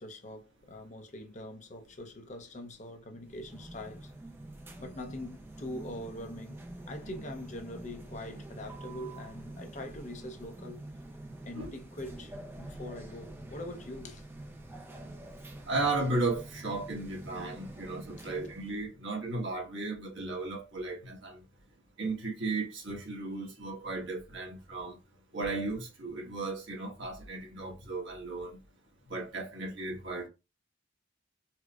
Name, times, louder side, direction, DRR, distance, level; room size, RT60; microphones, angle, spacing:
voice 1, 0.0-4.1 4.8-6.6 6.9-10.8 11.4-14.3 18.2-18.3, left 1 dB, 35° left, 0.6 m, -43 dB
sound 1, 3.2-18.8, right 1 dB, 10° right, 0.4 m, -46 dB
voice 2, 15.7-21.4 22.0-25.0 25.3-28.6 29.1-30.3, right 2 dB, 65° right, 1.3 m, -35 dB
4.4 x 2.1 x 2.3 m
head